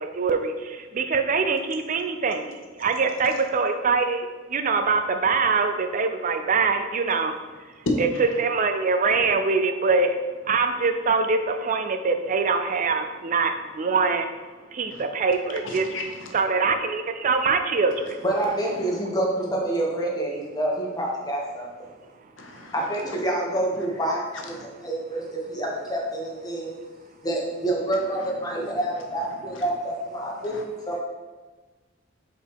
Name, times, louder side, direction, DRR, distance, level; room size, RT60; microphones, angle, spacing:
voice 1, 0.0-7.3 8.4-10.2 10.4-14.3 14.7-15.9 16.3-18.2, right 4 dB, 40° right, 7 dB, 0.4 m, -24 dB
voice 2, 7.8-8.3 14.9-15.0 15.7-16.4 17.9-19.0 22.4-23.2 23.8-23.9 24.3-24.7 27.9-29.7 30.4-30.6, left 2 dB, 75° left, 3 dB, 0.9 m, -35 dB
voice 3, 18.2-21.7 22.7-24.5 24.8-26.7 27.2-30.6 30.9-31.0, right 1 dB, 20° left, -2 dB, 1.2 m, -27 dB
5.2 x 4.0 x 4.7 m, 1.3 s
head